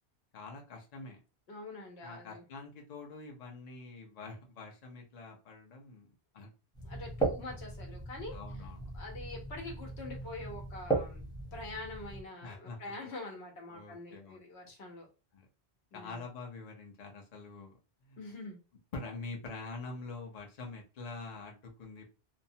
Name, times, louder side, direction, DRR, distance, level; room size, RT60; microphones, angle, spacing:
voice 1, 0.3-1.2 2.0-6.1 6.3-6.5 7.5-7.6 8.3-8.9 12.4-12.8 13.7-14.7 15.3-15.5 15.9-17.7 18.0-18.2 18.9-22.1, left 3 dB, 45° left, 1 dB, 0.6 m, -45 dB
voice 2, 1.5-2.4 6.8-8.4 8.9-11.2 11.5-15.1 15.9-16.2 18.2-18.6, left 2 dB, 80° left, 1 dB, 1.1 m, -45 dB
sound 1, 6.7-12.2, right 3 dB, 5° left, 0.6 m, -37 dB
2.8 x 2.0 x 2.7 m, 0.32 s
omnidirectional pair, 1.1 m